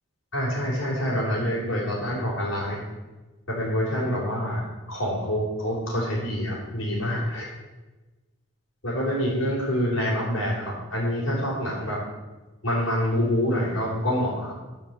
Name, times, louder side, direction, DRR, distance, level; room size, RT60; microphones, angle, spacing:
voice 1, 0.3-2.8 3.5-7.5 8.8-12.0 12.6-14.5, equal, 80° left, -9 dB, 3.9 m, -26 dB
11.5 x 5.3 x 7.4 m, 1.2 s
head